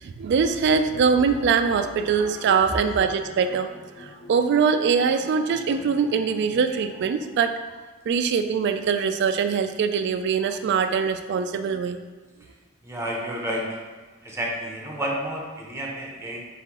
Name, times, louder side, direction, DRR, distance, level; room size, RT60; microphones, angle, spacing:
voice 1, 0.0-3.7 4.0-7.5 8.1-12.0, right 6 dB, 55° right, 8 dB, 0.3 m, -23 dB
sound 1, 0.6-7.4, left 2 dB, 65° left, 1.3 m, -43 dB
voice 2, 12.8-13.8 14.2-16.4, equal, 15° right, -2 dB, 0.7 m, -30 dB
3.7 x 3.6 x 2.9 m, 1.4 s
head